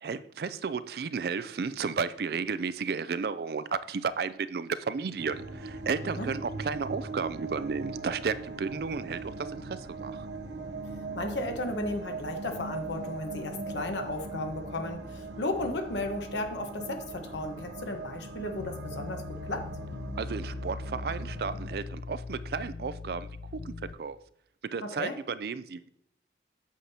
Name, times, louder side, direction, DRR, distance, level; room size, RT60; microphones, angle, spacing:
voice 1, 0.0-10.3 20.2-23.3 23.6-24.2 24.6-25.9, right 5 dB, 60° right, 15 dB, 0.4 m, -33 dB
sound 1, 5.2-21.8, right 3 dB, 85° right, 0.8 m, -40 dB
voice 2, 11.1-19.7 24.8-25.2, left 2 dB, 85° left, 5 dB, 1.1 m, -34 dB
hip hop bass line, 18.6-23.9, left 3 dB, 60° left, 0.4 m, -40 dB
8.4 x 7.4 x 2.8 m, 0.73 s
head